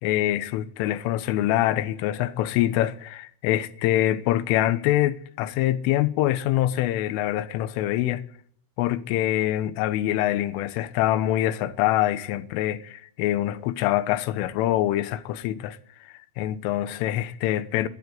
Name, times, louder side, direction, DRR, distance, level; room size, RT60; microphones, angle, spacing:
voice 1, 0.0-8.2 8.8-15.8 16.0-17.9, left 14 dB, 80° left, 3.5 m, -25 dB
22.5 x 14.5 x 9.4 m
omnidirectional pair, 5.8 m